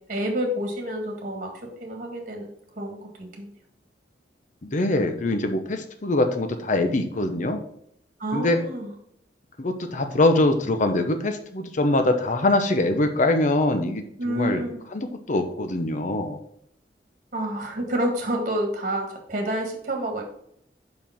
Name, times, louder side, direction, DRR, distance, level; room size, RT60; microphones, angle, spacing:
voice 1, 0.1-2.5 2.8-3.5 8.2-8.9 14.2-14.8 17.3-20.2, right 1 dB, 50° right, 2 dB, 1.7 m, -29 dB
voice 2, 4.6-7.6 8.3-8.6 9.6-14.6 14.9-16.4, left 2 dB, 45° left, 6 dB, 0.8 m, -23 dB
5.3 x 4.9 x 5.9 m, 0.69 s
head